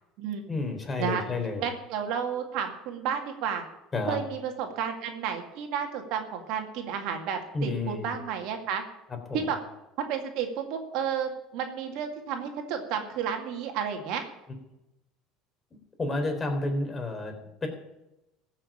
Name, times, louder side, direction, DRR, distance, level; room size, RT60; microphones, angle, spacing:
voice 1, 0.5-1.7 3.9-4.2 7.5-8.1 9.3-9.4 16.0-17.3 17.6-17.7, left 2 dB, 25° left, 4 dB, 3.9 m, -30 dB
voice 2, 1.6-3.6 4.1-8.8 9.3-9.6 10.1-14.2, right 7 dB, 65° right, 4 dB, 2.1 m, -32 dB
15.0 x 6.5 x 8.8 m, 0.92 s
supercardioid pair, 90°, 0 cm